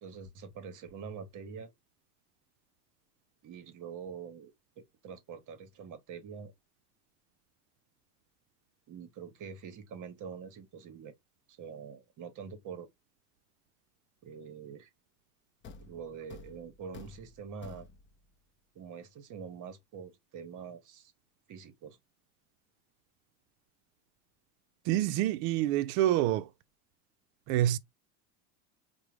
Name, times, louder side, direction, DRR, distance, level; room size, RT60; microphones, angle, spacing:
voice 1, 0.0-1.7 3.4-6.5 8.9-11.1 11.5-12.9 14.2-14.9 15.8-17.9 18.7-21.1 21.5-22.0, right 6 dB, 40° right, 0.9 m, -45 dB
Thump thud, 15.6-18.3, left 4 dB, 25° left, 0.5 m, -51 dB
voice 2, 24.9-26.5 27.5-27.8, right 13 dB, 65° right, 0.5 m, -27 dB
4.7 x 2.1 x 3.1 m
supercardioid pair, 100°, 46 cm